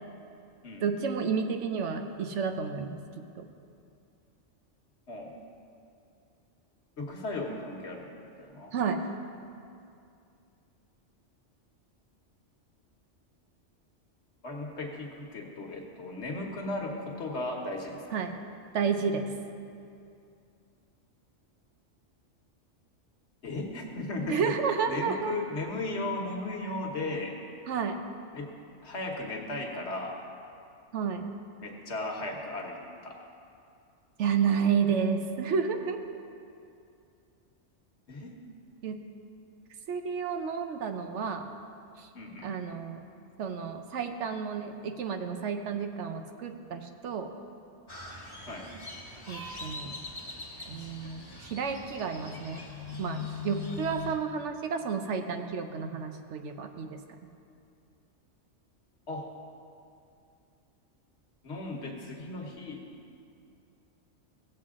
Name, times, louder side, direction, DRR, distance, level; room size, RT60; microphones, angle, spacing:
voice 1, 0.8-3.5 8.7-9.0 18.1-18.3 18.7-19.3 24.3-25.3 27.7-28.0 30.9-31.3 34.2-36.0 38.8-39.0 39.9-41.4 42.0-42.1 42.4-43.0 43.4-47.3 49.3-50.0 50.7-52.6 53.0-57.0, right 6 dB, 75° right, 6 dB, 1.0 m, -31 dB
voice 2, 7.0-8.1 8.4-8.7 14.4-18.2 23.4-24.5 24.9-27.3 28.3-28.5 28.8-30.2 31.6-33.2 38.1-38.3 42.1-42.6 48.5-48.7 59.1-59.3 61.4-62.8, left 2 dB, 65° left, 1 dB, 1.5 m, -36 dB
Crow, 47.9-54.1, left 4 dB, 20° left, 1.3 m, -41 dB
16.5 x 7.7 x 3.7 m, 2.5 s
omnidirectional pair, 1.2 m